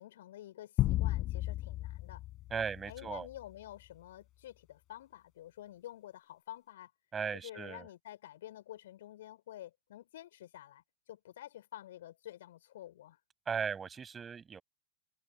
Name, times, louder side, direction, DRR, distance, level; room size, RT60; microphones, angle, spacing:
voice 1, 0.0-2.2 2.9-6.9 7.3-13.2, left 13 dB, 60° left, 6.0 m, -49 dB
sound 1, 0.8-3.4, left 16 dB, 35° left, 7.4 m, -34 dB
voice 2, 2.5-3.3 7.1-7.9 13.5-14.6, right 6 dB, 20° right, 7.8 m, -37 dB
figure-of-eight pair, 90°, 0 cm